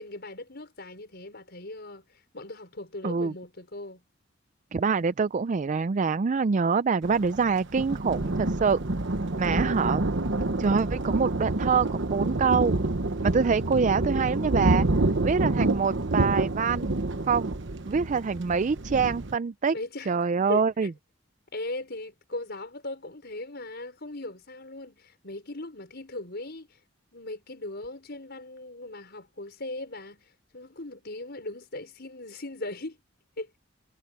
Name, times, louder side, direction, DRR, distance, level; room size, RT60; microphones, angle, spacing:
voice 1, 0.0-2.1 2.3-4.0 19.7-20.2 20.5-20.9 21.5-26.8 27.1-30.3 30.5-33.0 33.4-33.5, left 2 dB, 55° left, 5.7 m, -38 dB
voice 2, 3.0-3.3 4.7-8.8 9.4-10.0 10.6-12.7 13.2-14.9 15.2-17.0 17.3-17.5 17.9-19.7 20.1-20.9, right 5 dB, 40° right, 0.4 m, -25 dB
Thunder, 7.0-19.4, right 2 dB, 65° right, 1.2 m, -28 dB
head